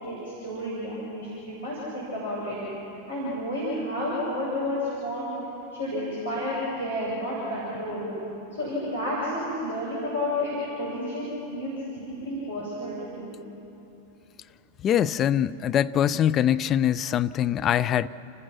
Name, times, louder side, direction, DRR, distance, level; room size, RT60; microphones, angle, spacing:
voice 1, 0.0-2.6 3.1-5.3 5.7-8.1 8.5-13.3, left 1 dB, 80° left, -9 dB, 6.6 m, -31 dB
voice 2, 14.8-18.1, left 10 dB, 30° left, 13 dB, 0.5 m, -23 dB
30.0 x 15.5 x 6.0 m, 2.9 s
figure-of-eight pair, 90°, 0 cm